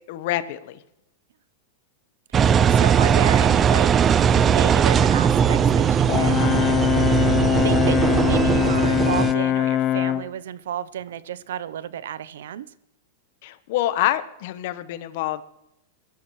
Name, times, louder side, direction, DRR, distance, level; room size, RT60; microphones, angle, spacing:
voice 1, 0.1-0.8 13.4-15.4, left 14 dB, 60° left, 13 dB, 1.1 m, -26 dB
Engine, 2.3-9.3, right 7 dB, 25° right, 0.5 m, -19 dB
voice 2, 2.3-3.9 4.3-6.6 7.6-8.0 8.3-12.7, right 10 dB, 80° right, 17 dB, 0.7 m, -32 dB
Brass instrument, 6.1-10.3, left 12 dB, 40° left, 0.5 m, -22 dB
20.0 x 13.5 x 3.2 m, 0.84 s
supercardioid pair, 135°, 0 cm